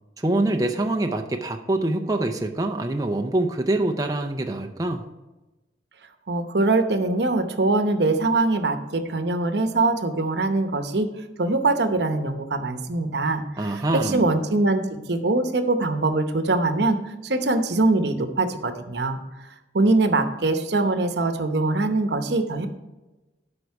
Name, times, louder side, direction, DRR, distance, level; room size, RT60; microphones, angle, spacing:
voice 1, 0.2-5.1 13.6-14.2, right 2 dB, 20° right, 4 dB, 0.5 m, -25 dB
voice 2, 6.3-11.1 11.4-17.0 17.2-19.2 19.7-22.7, right 2 dB, 70° right, 8 dB, 0.9 m, -23 dB
12.5 x 5.2 x 4.7 m, 1.1 s
head